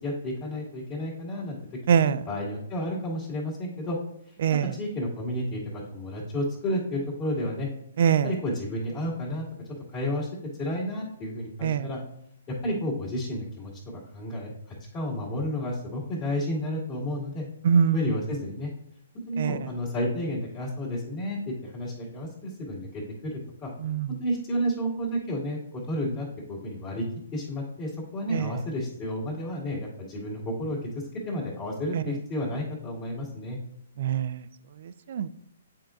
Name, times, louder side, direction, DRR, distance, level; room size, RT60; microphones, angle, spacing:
voice 1, 0.0-1.6 1.9-4.0 4.7-5.6 5.9-7.7 8.2-9.4 9.9-10.3 10.6-12.0 12.5-14.5 14.9-17.4 17.9-18.7 19.3-23.7 24.2-25.6 25.9-27.0 27.3-30.9 31.3-33.6, equal, 30° left, -5 dB, 2.0 m, -31 dB
voice 2, 1.9-2.2 4.4-4.7 8.0-8.3 11.6-11.9 17.6-18.0 19.4-19.6 23.8-24.1 28.3-28.5 31.9-32.0 34.0-34.4 35.1-35.3, right 7 dB, 55° right, 15 dB, 0.3 m, -23 dB
9.0 x 4.5 x 2.5 m, 0.76 s
figure-of-eight pair, 130°, 0 cm